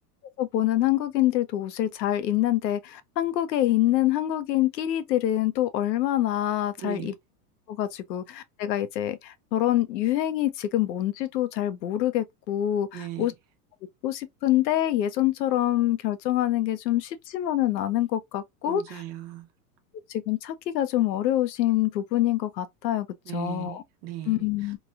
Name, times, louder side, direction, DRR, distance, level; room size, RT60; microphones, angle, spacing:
voice 1, 0.4-7.1 7.7-13.3 14.0-18.8 20.1-23.1 23.3-23.8 24.3-24.8, left 13 dB, 90° left, 0.7 m, -25 dB
voice 2, 6.8-7.2 12.9-13.3 18.7-19.5 23.2-24.8, right 12 dB, 45° right, 0.8 m, -37 dB
3.0 x 2.2 x 2.4 m
supercardioid pair, 130°, 49 cm